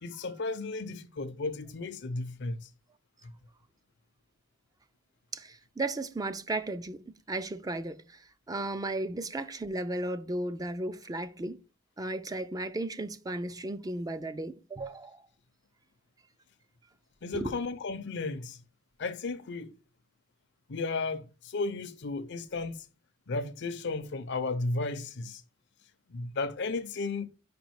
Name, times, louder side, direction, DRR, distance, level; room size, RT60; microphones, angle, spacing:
voice 1, 0.0-2.7 3.2-3.3 17.2-18.6 19.0-19.7 20.7-22.9 23.3-25.4 26.1-27.3, left 3 dB, 60° left, 0.6 m, -34 dB
voice 2, 5.3-11.6 12.0-15.2 17.3-17.5, right 2 dB, 20° right, 0.4 m, -35 dB
5.2 x 4.9 x 4.6 m
head